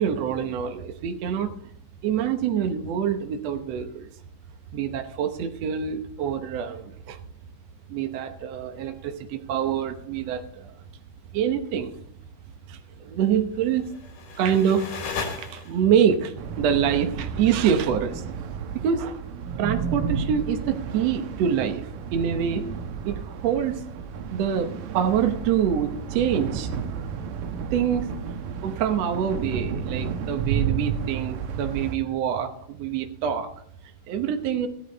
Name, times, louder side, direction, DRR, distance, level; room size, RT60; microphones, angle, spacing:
voice 1, 0.0-1.7 2.0-4.1 4.7-7.2 7.9-10.8 11.3-11.9 12.7-15.0 15.2-18.5 18.7-19.2 19.6-22.6 23.1-23.8 24.3-26.7 27.7-28.1 28.6-33.5 34.1-34.7, right 8 dB, 65° right, 5 dB, 1.7 m, -26 dB
sound 1, 13.7-16.0, left 5 dB, 65° left, 3.2 m, -35 dB
sound 2, 16.4-32.0, right 6 dB, 85° right, 2.7 m, -32 dB
16.0 x 10.5 x 4.1 m, 0.67 s
omnidirectional pair, 3.8 m